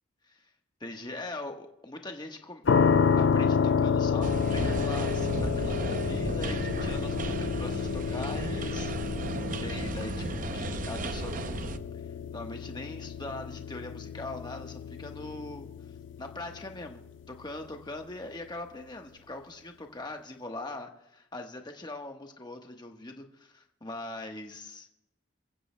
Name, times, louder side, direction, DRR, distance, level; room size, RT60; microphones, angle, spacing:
voice 1, 0.8-2.6 3.2-11.8 12.3-15.7 16.2-17.0 17.3-24.9, left 2 dB, 20° left, 3 dB, 1.2 m, -41 dB
sound 1, 2.7-17.5, left 6 dB, 70° left, 0.4 m, -30 dB
sound 2, 4.2-11.8, right 3 dB, 45° right, 0.6 m, -34 dB
27.5 x 15.5 x 2.2 m, 0.88 s
head